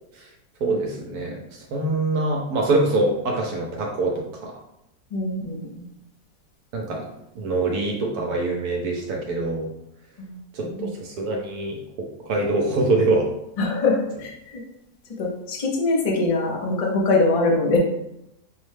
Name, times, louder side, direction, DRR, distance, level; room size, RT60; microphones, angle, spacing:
voice 1, 0.6-4.5 6.7-7.0 7.4-9.7 10.5-11.8 12.3-13.3, right 2 dB, 75° right, 0 dB, 1.1 m, -24 dB
voice 2, 5.1-5.9 10.2-10.9 13.6-14.6 15.2-17.8, left 3 dB, 65° left, -1 dB, 0.3 m, -23 dB
5.7 x 2.1 x 3.2 m, 0.83 s
omnidirectional pair, 1.7 m